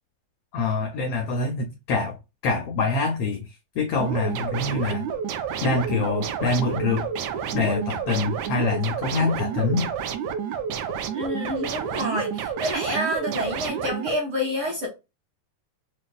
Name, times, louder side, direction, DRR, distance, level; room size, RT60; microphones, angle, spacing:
voice 1, 0.5-2.2 2.4-5.0 5.6-7.1 7.5-9.9, left 3 dB, 85° left, 1.3 m, -25 dB
sound 1, 4.0-14.1, right 7 dB, 75° right, 1.7 m, -30 dB
voice 2, 11.1-14.9, equal, 60° right, 1.4 m, -28 dB
5.6 x 2.3 x 2.2 m
omnidirectional pair, 3.6 m